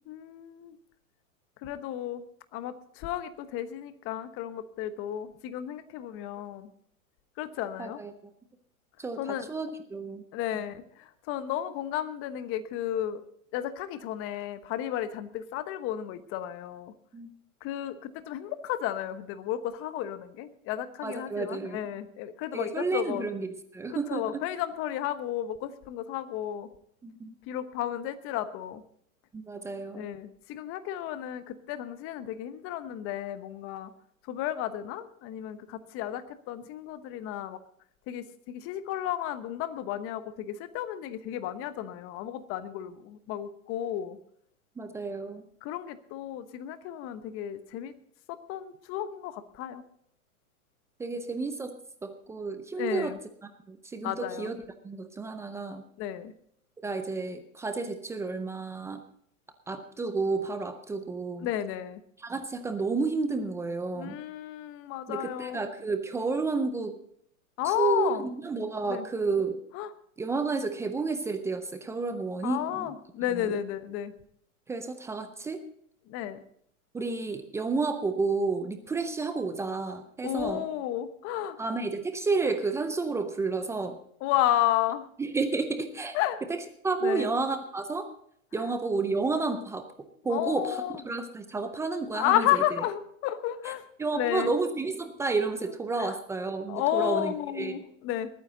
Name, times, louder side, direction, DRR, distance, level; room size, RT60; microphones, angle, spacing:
voice 1, 0.1-0.8 1.6-2.2 2.5-6.7 7.4-8.0 9.2-9.5 10.3-13.2 13.5-16.9 17.6-23.2 23.9-26.7 27.5-28.8 29.9-33.9 34.3-37.6 38.1-44.2 45.6-47.9 48.3-49.8 52.8-53.2 54.0-54.5 56.0-56.3 61.4-62.0 63.9-65.6 67.6-68.3 68.9-69.1 69.7-69.9 72.4-74.1 76.1-76.4 80.2-81.6 84.2-85.1 86.1-86.4 87.0-87.3 88.5-88.7 90.3-91.0 92.1-93.8 94.1-94.5 96.0-96.2 96.7-98.3, left 12 dB, 30° left, 12 dB, 1.1 m, -32 dB
voice 2, 7.8-8.1 9.0-10.2 17.1-17.3 21.0-21.8 22.5-23.5 23.7-24.4 27.0-27.3 29.3-30.1 44.8-45.4 51.0-51.8 52.0-53.1 53.7-54.6 54.8-55.8 56.8-59.0 59.7-61.5 62.2-64.2 65.1-67.0 67.6-68.1 68.4-69.6 70.2-72.9 73.3-73.6 74.7-75.6 76.9-80.6 81.6-84.0 85.2-86.2 86.5-86.6 86.8-88.1 88.5-89.8 90.2-90.8 91.0-92.6 94.0-97.8, right 4 dB, 5° right, 8 dB, 0.5 m, -31 dB
21.0 x 9.4 x 3.9 m, 0.67 s
hypercardioid pair, 130°, 43 cm